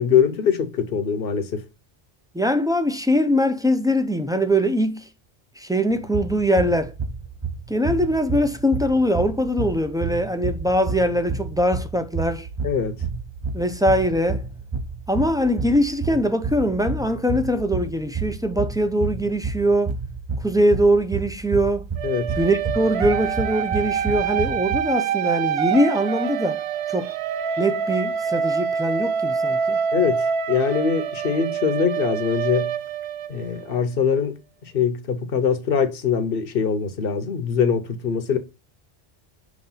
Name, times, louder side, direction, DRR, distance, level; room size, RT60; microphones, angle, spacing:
voice 1, 0.0-1.6 12.6-13.0 22.0-22.3 29.9-32.7 33.3-34.4 34.7-38.4, left 7 dB, 65° left, 1.1 m, -22 dB
voice 2, 2.3-5.1 5.6-6.9 7.7-12.5 13.5-14.5 15.1-19.9 20.4-21.8 22.4-26.6 26.9-27.1 27.6-29.8, equal, 5° right, 0.4 m, -22 dB
sound 1, 5.9-24.8, right 4 dB, 30° right, 0.7 m, -30 dB
sound 2, 22.0-33.8, right 7 dB, 80° right, 0.8 m, -26 dB
6.2 x 3.3 x 5.5 m
omnidirectional pair, 1.0 m